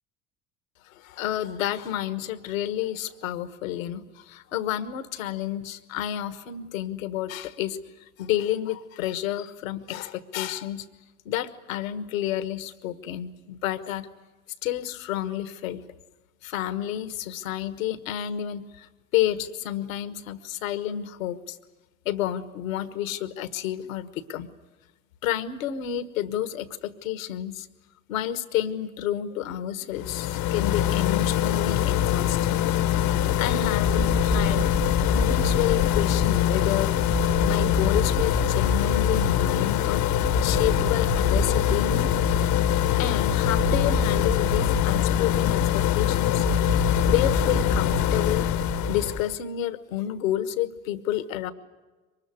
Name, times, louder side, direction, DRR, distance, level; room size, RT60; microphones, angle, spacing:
voice 1, 0.9-7.8 8.2-10.8 11.2-14.1 14.6-15.8 16.4-18.9 19.1-21.6 22.0-24.5 25.2-27.7 28.1-32.6 33.4-34.7 35.1-36.9 37.5-40.1 40.4-42.1 43.0-46.4 47.0-48.5 48.9-51.5, left 11 dB, 85° left, 13 dB, 1.4 m, -30 dB
sound 1, 29.9-49.3, left 11 dB, 60° left, 1.0 m, -23 dB
sound 2, 33.8-49.4, right 4 dB, 30° right, 1.1 m, -32 dB
24.0 x 21.0 x 9.6 m, 1.2 s
hypercardioid pair, 70°, 39 cm